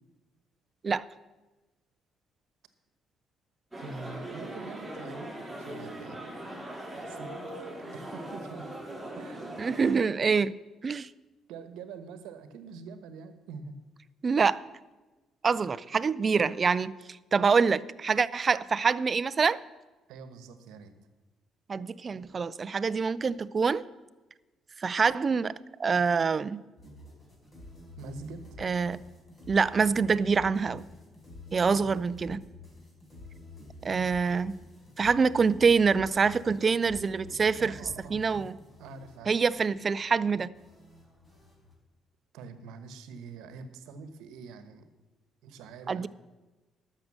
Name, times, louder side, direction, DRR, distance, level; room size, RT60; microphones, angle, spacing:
sound 1, 3.7-10.0, right 1 dB, 5° right, 4.0 m, -40 dB
voice 1, 3.8-6.2 6.9-8.7 9.1-9.5 11.5-13.8 20.1-20.9 28.0-28.6 37.6-38.5 38.8-39.4 42.3-44.8 45.4-46.1, right 4 dB, 85° right, 11 dB, 1.1 m, -45 dB
voice 2, 9.6-10.5 10.8-11.1 14.2-14.6 15.4-16.9 17.3-19.6 21.7-23.8 24.8-26.6 28.6-29.0 29.5-30.9 31.5-32.4 33.8-34.5 35.0-37.8 38.1-38.6 39.3-40.5 45.9-46.1, right 5 dB, 40° right, 18 dB, 0.4 m, -25 dB
sound 2, 26.8-41.7, left 2 dB, 25° left, 4.4 m, -49 dB
12.5 x 6.5 x 7.5 m, 1.2 s
cardioid pair, 85°, 0 cm